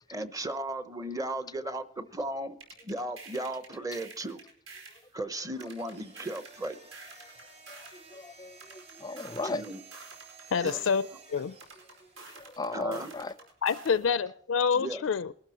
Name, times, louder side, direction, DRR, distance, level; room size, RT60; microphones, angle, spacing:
voice 1, 0.1-2.6 2.8-4.4 5.1-6.8 9.4-9.8 10.6-10.8 12.7-13.1 14.7-15.0, right 1 dB, 15° right, 12 dB, 0.8 m, -36 dB
sound 1, 2.6-5.1 5.6-8.1 8.6-11.1 11.6-14.1, right 3 dB, 85° right, 5.0 m, -49 dB
sound 2, 5.4-12.8, right 5 dB, 35° right, 6.5 m, -54 dB
voice 2, 8.1-9.6 12.4-13.3, left 2 dB, 20° left, 15 dB, 0.5 m, -36 dB
voice 3, 10.5-11.1 11.3-11.5 13.6-15.3, left 6 dB, 75° left, 15 dB, 0.4 m, -27 dB
22.0 x 13.0 x 2.9 m, 0.66 s
head